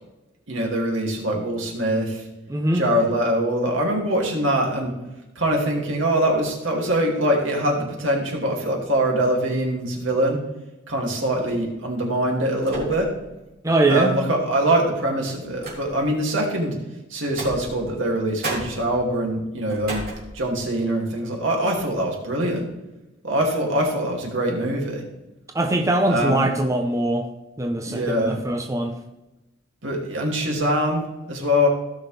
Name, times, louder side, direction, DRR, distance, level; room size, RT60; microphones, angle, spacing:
voice 1, 0.5-2.2 2.7-4.9 5.4-10.4 10.9-13.1 13.9-16.7 17.1-20.0 20.3-22.7 23.2-25.0 26.1-26.5 27.8-28.5 29.8-31.7, right 1 dB, 75° right, 0 dB, 2.6 m, -23 dB
voice 2, 2.5-2.8 13.6-14.1 25.5-27.3 27.6-28.9, right 2 dB, 15° right, 4 dB, 0.7 m, -22 dB
sound 1, 11.3-11.6 12.6-13.3 13.7-13.8 14.8-16.2 17.2-18.1 18.4-20.8 21.2-21.3 21.6-22.0, right 2 dB, 50° right, 3.4 m, -35 dB
16.5 x 6.4 x 3.4 m, 1.0 s
head